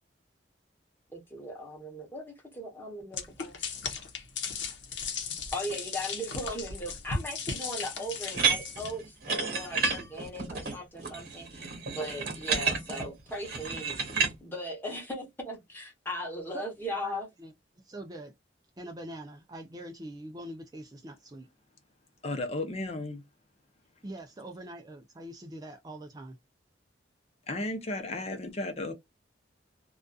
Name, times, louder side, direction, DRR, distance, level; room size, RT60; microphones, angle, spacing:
voice 1, 1.1-3.6 5.5-13.9 14.4-17.3, equal, 10° left, 0.9 m, -38 dB
sound 1, 3.1-8.9, left 5 dB, 75° left, 0.8 m, -36 dB
sound 2, 8.3-14.3, right 5 dB, 55° right, 1.1 m, -31 dB
voice 2, 17.0-17.5 17.8-18.3 18.8-21.5 24.0-26.4, right 1 dB, 20° right, 0.4 m, -43 dB
voice 3, 22.2-23.2 27.5-28.9, left 2 dB, 35° left, 0.6 m, -34 dB
2.5 x 2.3 x 2.3 m
head